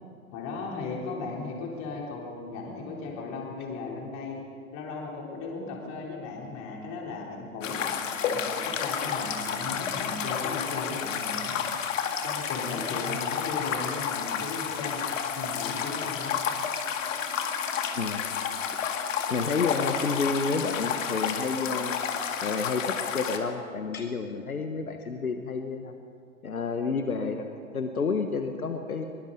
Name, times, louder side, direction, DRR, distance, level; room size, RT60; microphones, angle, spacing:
voice 1, 0.3-4.4 4.7-7.8 8.2-11.6 12.2-15.0 15.3-16.4, left 3 dB, 40° left, -2 dB, 3.9 m, -36 dB
sound 1, 7.6-23.4, left 7 dB, 65° left, 2.1 m, -31 dB
voice 2, 19.3-22.1 22.4-25.9 26.4-27.5 27.7-29.1, left 4 dB, 85° left, 6 dB, 1.4 m, -30 dB
22.5 x 22.0 x 5.3 m, 2.3 s
figure-of-eight pair, 100°, 42 cm